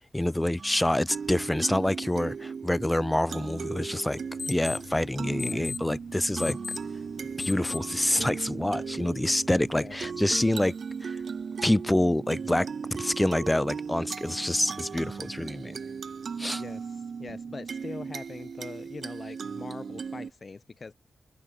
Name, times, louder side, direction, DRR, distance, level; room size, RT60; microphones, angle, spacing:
voice 1, 0.1-4.2 4.5-6.6 7.4-10.7 11.0-11.2 11.6-12.7 13.0-15.8 16.4-16.6, left 1 dB, 10° left, 0.3 m, -26 dB
sound 1, 0.6-20.3, right 6 dB, 60° right, 2.2 m, -37 dB
sound 2, 4.1-10.6, left 6 dB, 60° left, 0.8 m, -41 dB
voice 2, 5.4-5.7 9.7-9.9 16.6-16.8 17.2-20.9, left 4 dB, 45° left, 2.6 m, -42 dB
cardioid pair, 75°, 0 cm